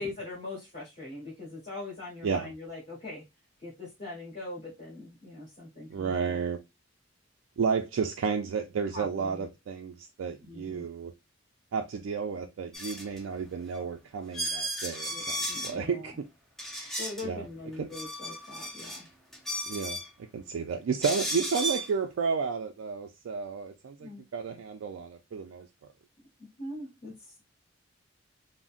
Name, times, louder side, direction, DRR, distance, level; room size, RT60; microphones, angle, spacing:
voice 1, 0.0-3.2 3.6-6.4 8.9-9.5 10.4-10.9 15.1-16.2 17.0-19.1 24.0-24.2 26.6-27.4, left 2 dB, 40° left, 1.3 m, -41 dB
voice 2, 5.9-6.6 7.6-11.1 11.7-16.1 17.2-17.4 17.8-17.9 19.7-20.0 20.3-25.7, right 5 dB, 85° right, 0.3 m, -32 dB
sound 1, 12.7-13.2 13.7-13.8 14.3-15.8 16.6-17.2 17.7-19.0 19.3-20.1 21.0-21.9, right 1 dB, ahead, 0.4 m, -34 dB
3.7 x 2.0 x 2.4 m
head